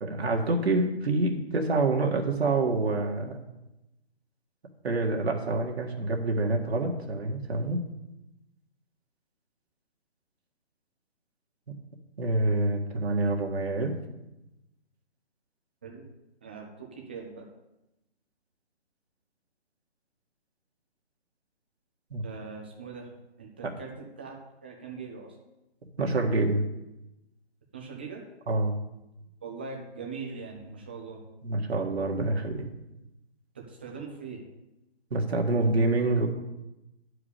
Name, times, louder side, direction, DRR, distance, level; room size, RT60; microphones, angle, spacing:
voice 1, 0.0-3.4 4.8-7.8 12.2-13.9 22.1-22.2 26.0-26.6 28.5-28.7 31.4-32.7 35.1-36.3, right 2 dB, 70° right, 1 dB, 1.8 m, -26 dB
voice 2, 16.4-17.4 22.2-23.1 23.4-23.9 24.2-25.4 27.7-28.2 29.4-31.2 33.5-34.4, right 5 dB, 10° right, 0 dB, 0.5 m, -41 dB
10.0 x 4.9 x 8.2 m, 0.93 s
hypercardioid pair, 165°, 33 cm